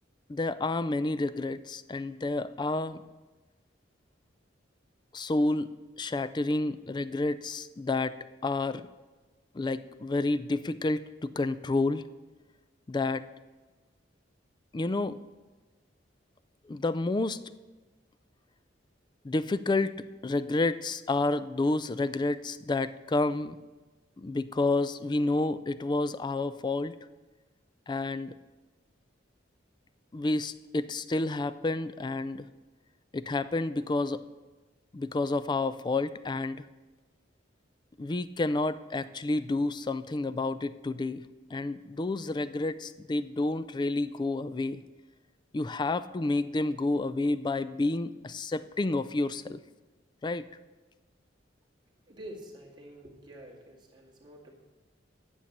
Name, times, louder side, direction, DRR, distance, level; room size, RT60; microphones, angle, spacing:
voice 1, 0.3-3.0 5.1-5.7 6.0-8.2 8.4-8.9 9.5-12.0 12.9-13.3 14.7-15.2 16.7-17.4 19.2-23.6 24.2-26.9 27.9-28.3 30.1-32.5 33.1-34.2 34.9-36.7 38.0-41.3 41.5-44.8 45.5-49.6 50.2-50.5, left 2 dB, 25° left, 14 dB, 0.4 m, -30 dB
voice 2, 52.1-54.5, right 1 dB, 25° right, -3 dB, 2.0 m, -47 dB
10.5 x 7.2 x 6.6 m, 1.2 s
head